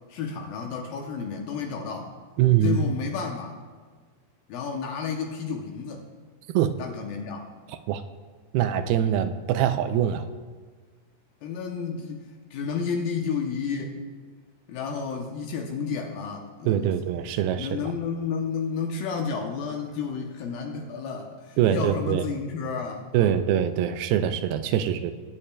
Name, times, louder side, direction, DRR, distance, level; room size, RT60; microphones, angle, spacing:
voice 1, 0.1-2.1 2.6-3.6 4.5-6.0 6.8-7.5 11.4-14.0 14.7-16.9 17.6-23.4, left 5 dB, 75° left, 2 dB, 2.3 m, -31 dB
voice 2, 2.4-2.8 6.5-6.8 7.9-8.0 8.5-10.3 16.7-17.7 21.6-22.2 23.1-25.1, right 10 dB, 85° right, 9 dB, 2.3 m, -23 dB
19.5 x 8.9 x 2.2 m, 1.5 s
omnidirectional pair, 4.7 m